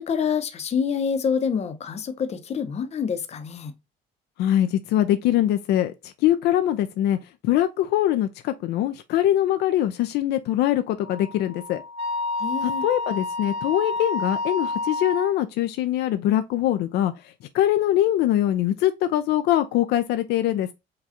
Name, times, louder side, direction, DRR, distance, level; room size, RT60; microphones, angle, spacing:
voice 1, 0.0-3.7 12.4-12.8, left 6 dB, 40° left, 0.7 m, -27 dB
voice 2, 4.4-7.2 7.4-11.8 12.6-17.1 17.5-20.7, left 12 dB, 75° left, 0.4 m, -23 dB
Wind instrument woodwind instrument, 11.0-15.3, left 2 dB, 35° right, 0.8 m, -29 dB
4.8 x 2.3 x 2.8 m
cardioid pair, 110°, 17 cm